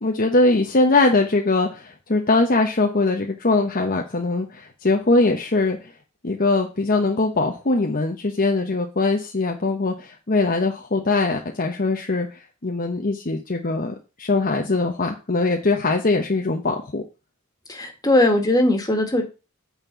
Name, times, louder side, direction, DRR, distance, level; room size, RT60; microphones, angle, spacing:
voice 1, 0.0-5.8 6.2-12.3 12.6-17.0, left 3 dB, 40° left, 3 dB, 1.0 m, -21 dB
voice 2, 17.7-19.2, left 1 dB, 20° left, 3 dB, 2.0 m, -19 dB
9.2 x 4.5 x 6.9 m, 0.31 s
head